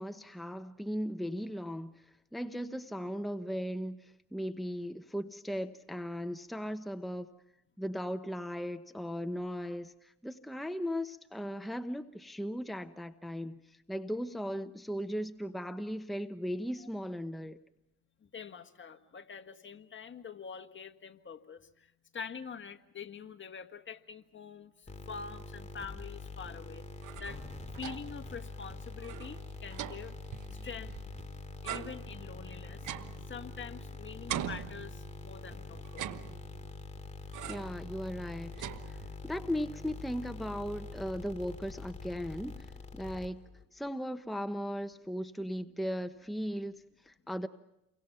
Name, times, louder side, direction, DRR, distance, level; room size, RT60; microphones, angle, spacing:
voice 1, 0.0-7.3 7.8-17.6 37.5-39.0 39.2-43.4 43.7-47.5, equal, ahead, 1.0 m, -37 dB
voice 2, 18.2-27.4 27.7-30.2 30.5-30.9 31.6-32.9 33.3-36.1, left 6 dB, 40° left, 1.6 m, -45 dB
sound 1, 24.9-43.6, left 2 dB, 25° left, 2.6 m, -45 dB
sound 2, 26.8-28.3 28.6-28.7 29.0-31.2 31.6-33.9 34.3-35.4 35.8-36.8 37.3-37.8 38.2-39.3, right 11 dB, 75° right, 1.2 m, -42 dB
29.0 x 24.0 x 5.8 m
cardioid pair, 90°, 30 cm